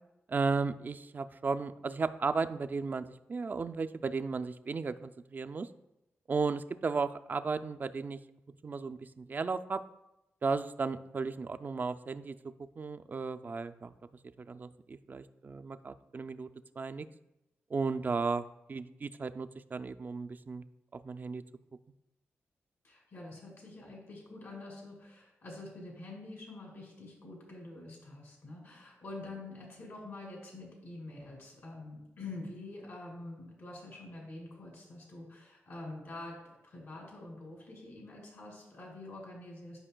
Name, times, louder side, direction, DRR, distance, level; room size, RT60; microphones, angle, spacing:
voice 1, 0.3-5.7 6.3-8.2 8.6-9.8 10.4-12.4 12.8-13.9 14.4-16.5 16.8-17.1 17.7-18.4 18.7-20.6 20.9-21.4, right 4 dB, 40° right, 10 dB, 0.3 m, -34 dB
voice 2, 22.8-39.8, left 2 dB, 75° left, -2 dB, 2.3 m, -46 dB
9.9 x 5.3 x 2.2 m, 0.90 s
cardioid pair, 75°, 5 cm